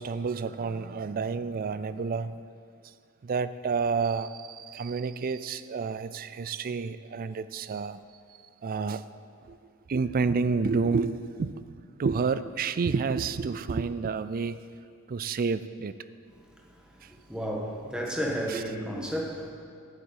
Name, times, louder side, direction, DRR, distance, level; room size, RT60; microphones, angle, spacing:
voice 1, 0.0-2.4 3.2-8.0 8.6-9.0 9.5-9.6 9.9-11.7 12.0-14.6 15.1-15.9 17.0-17.1 18.5-18.6, right 5 dB, 40° right, 14 dB, 0.4 m, -29 dB
voice 2, 17.3-19.5, equal, 5° right, -1 dB, 1.4 m, -32 dB
8.2 x 8.1 x 8.8 m, 2.3 s
head